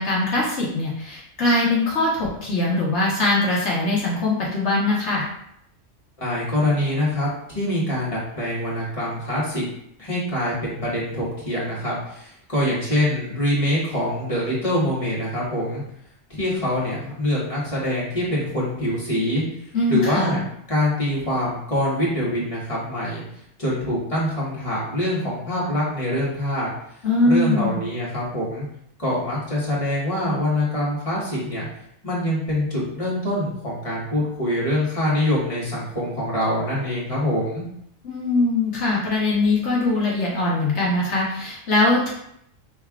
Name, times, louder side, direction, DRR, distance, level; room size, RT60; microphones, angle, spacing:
voice 1, 0.0-5.3 19.7-20.3 27.0-27.8 38.0-42.1, left 2 dB, 65° left, -5 dB, 1.3 m, -21 dB
voice 2, 6.2-9.6 10.0-15.8 16.3-19.4 19.9-20.4 20.7-23.2 23.6-26.7 27.2-28.6 29.0-31.7 32.0-37.6, left 1 dB, 25° left, -7 dB, 1.6 m, -24 dB
5.5 x 3.4 x 2.4 m, 0.75 s
omnidirectional pair, 1.3 m